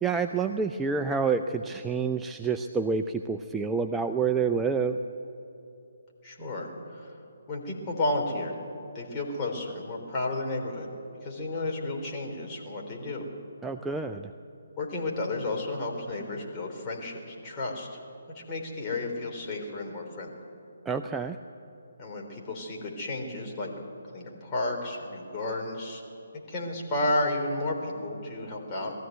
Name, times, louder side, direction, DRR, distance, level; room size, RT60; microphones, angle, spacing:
voice 1, 0.0-5.0 13.6-14.3 20.9-21.4, right 5 dB, 10° right, 5 dB, 0.5 m, -28 dB
voice 2, 6.2-7.1 7.5-8.6 8.9-10.9 11.2-13.3 14.8-18.0 18.3-20.4 22.0-23.7 24.0-26.0 26.5-28.9, left 2 dB, 25° left, -1 dB, 3.7 m, -32 dB
20.0 x 14.0 x 9.3 m, 2.8 s
figure-of-eight pair, 145°, 0 cm